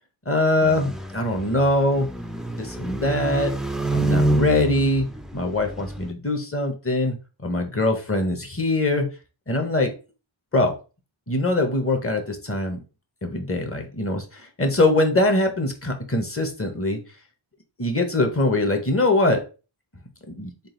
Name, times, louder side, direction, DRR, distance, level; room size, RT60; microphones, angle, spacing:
voice 1, 0.3-2.1 2.6-3.5 3.9-5.1 5.3-7.2 7.4-9.1 9.5-9.9 10.5-10.7 11.3-12.8 13.2-17.0 17.8-19.4 20.3-20.5, left 2 dB, 25° left, 4 dB, 1.1 m, -22 dB
sound 1, 0.6-6.1, right 1 dB, ahead, 0.4 m, -27 dB
3.9 x 2.4 x 3.8 m, 0.33 s
cardioid pair, 40°, 49 cm